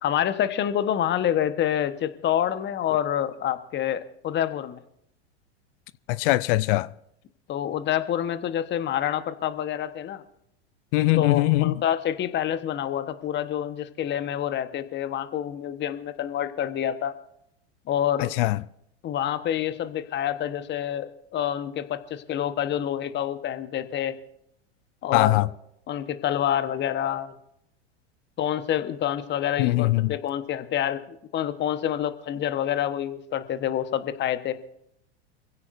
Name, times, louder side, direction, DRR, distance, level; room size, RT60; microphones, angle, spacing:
voice 1, 0.0-4.8 7.5-10.2 11.2-17.2 17.9-18.3 19.0-24.2 25.0-25.5 25.9-27.3 28.4-31.0 31.3-34.6, left 10 dB, 30° left, 1.2 m, -27 dB
voice 2, 6.1-6.9 10.9-11.8 18.2-18.6 25.1-25.5 29.6-30.1, left 19 dB, 50° left, 0.5 m, -21 dB
25.5 x 16.0 x 2.6 m
hypercardioid pair, 90°, 34 cm